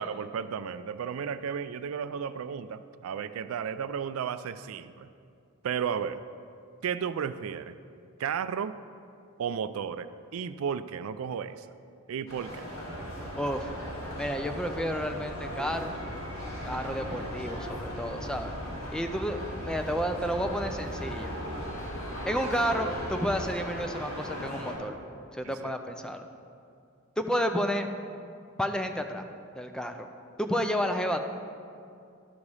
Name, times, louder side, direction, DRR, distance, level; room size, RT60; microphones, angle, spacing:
voice 1, 0.0-5.1 5.6-6.2 6.8-7.8 8.2-8.8 9.4-11.7 12.1-12.7 25.4-25.7, right 7 dB, 75° right, 13 dB, 0.3 m, -33 dB
sound 1, 12.3-24.7, equal, 65° left, 2.3 m, -38 dB
sound 2, 12.9-23.5, right 1 dB, 60° right, 1.0 m, -43 dB
voice 2, 13.4-13.7 14.2-16.0 16.6-18.5 18.9-21.3 22.3-25.0 25.3-26.3 27.2-27.9 28.6-29.3 29.6-30.1 30.4-31.3, equal, 5° left, 6 dB, 0.4 m, -31 dB
12.0 x 4.9 x 5.4 m, 2.4 s
head